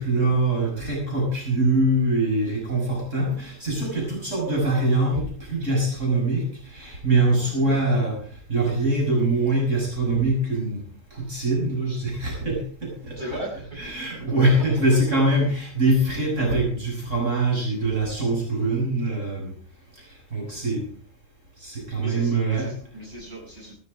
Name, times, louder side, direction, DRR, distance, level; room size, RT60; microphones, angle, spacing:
voice 1, 0.0-8.2 8.5-10.8 11.1-13.2 13.8-19.5 20.0-20.9 21.6-22.7, right 2 dB, 65° right, -2 dB, 6.3 m, -23 dB
voice 2, 7.4-7.8 13.2-14.3 20.5-20.6 22.0-23.7, equal, 35° right, -3 dB, 7.5 m, -38 dB
16.0 x 12.5 x 4.9 m, 0.42 s
omnidirectional pair, 1.4 m